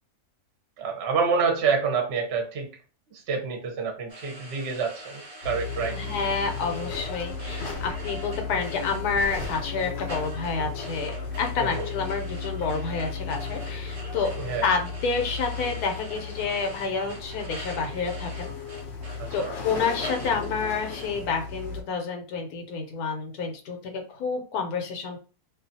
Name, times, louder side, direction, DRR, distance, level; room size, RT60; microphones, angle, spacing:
voice 1, 0.8-2.7 3.3-6.3 11.6-11.9 14.4-14.7 19.4-19.5, right 5 dB, 55° right, 2 dB, 0.8 m, -27 dB
sound 1, 4.1-21.1, equal, 75° right, 0.3 m, -43 dB
sound 2, 5.4-21.8, left 5 dB, 60° left, 0.7 m, -35 dB
voice 2, 6.0-14.3 14.6-18.5 19.3-25.2, left 5 dB, 80° left, 3 dB, 1.1 m, -29 dB
2.5 x 2.3 x 2.6 m, 0.36 s
omnidirectional pair, 1.6 m